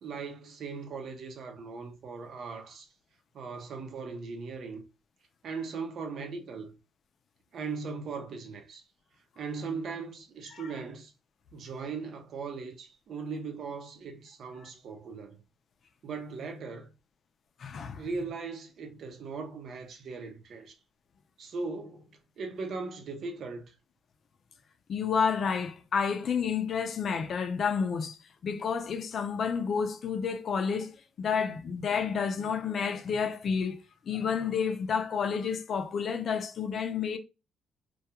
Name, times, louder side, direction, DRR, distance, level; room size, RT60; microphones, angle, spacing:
voice 1, 0.0-2.9 3.3-4.8 5.4-6.8 7.5-8.8 9.4-11.1 11.5-15.4 16.0-16.9 17.9-20.7 21.4-23.8, right 4 dB, 60° right, 0.6 m, -39 dB
voice 2, 17.6-18.1 24.9-33.8 34.1-37.2, left 6 dB, 55° left, 0.4 m, -30 dB
2.3 x 2.2 x 2.8 m
cardioid pair, 95°, 0 cm